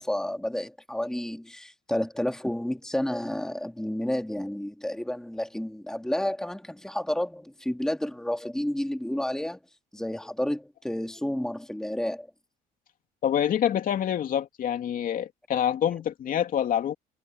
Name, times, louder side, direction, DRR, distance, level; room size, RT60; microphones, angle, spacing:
voice 1, 0.0-9.6 9.9-12.3, left 1 dB, 5° left, 2.1 m, -30 dB
voice 2, 13.2-16.9, left 9 dB, 55° left, 2.7 m, -26 dB
cardioid pair, 110°, 17 cm